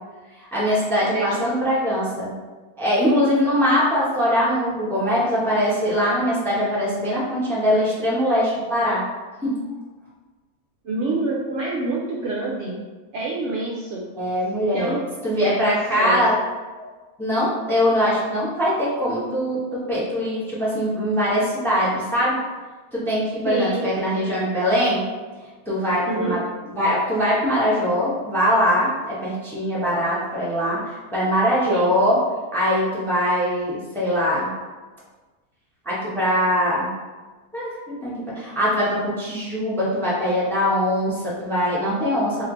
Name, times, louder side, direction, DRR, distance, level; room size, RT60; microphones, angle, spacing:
voice 1, 0.4-2.3 2.8-9.0 9.4-9.6 14.1-15.0 15.2-16.3 16.8-16.9 17.2-22.4 22.9-25.0 25.7-26.4 26.7-32.2 32.5-34.5 35.8-36.9 37.5-42.4, equal, ahead, -7 dB, 0.7 m, -22 dB
voice 2, 10.8-12.7 13.1-14.0 14.7-15.0 15.4-16.3 23.4-23.8 26.1-26.4 31.6-31.9, right 2 dB, 65° right, -3 dB, 0.8 m, -26 dB
3.2 x 2.9 x 3.8 m, 1.3 s
omnidirectional pair, 1.5 m